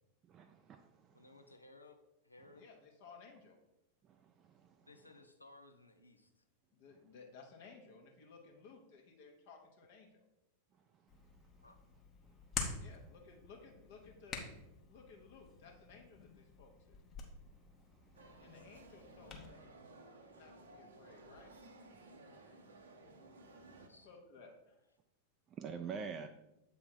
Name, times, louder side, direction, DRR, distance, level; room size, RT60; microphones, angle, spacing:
voice 1, 0.3-1.3 4.0-4.9 18.0-18.3 22.4-22.7 25.5-26.3, right 6 dB, 30° right, 6 dB, 0.4 m, -47 dB
voice 2, 1.1-2.0 2.2-2.6 4.8-6.3 11.6-11.8 23.9-24.1, left 2 dB, 85° left, 6 dB, 0.6 m, -59 dB
voice 3, 2.5-3.6 6.7-10.2 12.8-14.4 14.9-17.0 18.4-19.7 20.3-21.5 23.9-24.8, left 4 dB, 50° left, 2 dB, 1.1 m, -58 dB
Hands, 11.1-19.5, left 4 dB, 30° left, 1.0 m, -48 dB
sound 1, 18.1-23.9, right 2 dB, 65° right, 0.7 m, -57 dB
7.6 x 3.5 x 4.4 m, 0.89 s
figure-of-eight pair, 90°, 0 cm